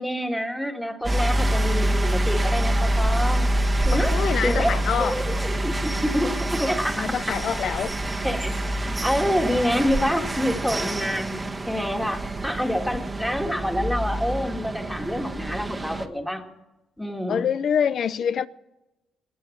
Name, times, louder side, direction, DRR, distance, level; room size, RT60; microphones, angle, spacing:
voice 1, 0.0-3.6 3.8-7.1 8.2-8.6 9.0-16.4 17.0-17.5, equal, 5° left, 2.2 m, -27 dB
sound 1, 1.0-16.1, right 1 dB, 20° right, 1.3 m, -26 dB
voice 2, 3.9-5.1 7.0-7.9 17.3-18.5, left 8 dB, 60° left, 0.6 m, -25 dB
20.5 x 8.6 x 7.4 m
cardioid pair, 90°, 0 cm